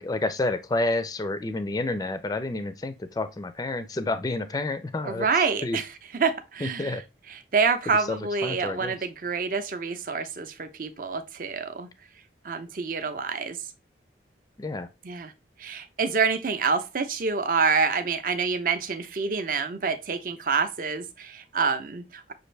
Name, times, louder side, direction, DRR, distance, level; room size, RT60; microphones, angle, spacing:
voice 1, 0.0-5.3 5.6-5.8 6.6-7.0 7.9-8.9 14.6-14.9, left 2 dB, 20° left, 0.3 m, -29 dB
voice 2, 5.0-7.0 7.3-11.9 12.4-13.7 15.0-15.3 15.6-22.3, right 5 dB, 50° right, 0.5 m, -27 dB
6.3 x 2.5 x 3.2 m
head